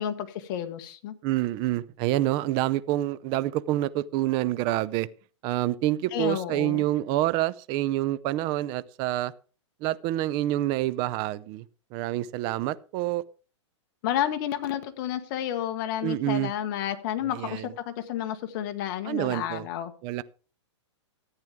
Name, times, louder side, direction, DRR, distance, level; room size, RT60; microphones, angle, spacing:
voice 1, 0.0-1.1 6.1-6.8 14.0-19.9, left 10 dB, 40° left, 1.4 m, -31 dB
voice 2, 1.2-5.1 5.4-9.3 9.8-11.6 11.9-13.2 16.0-16.5 17.3-17.7 19.1-19.6 20.0-20.2, right 15 dB, 30° right, 0.5 m, -27 dB
13.5 x 9.0 x 3.6 m
hypercardioid pair, 155°, 16 cm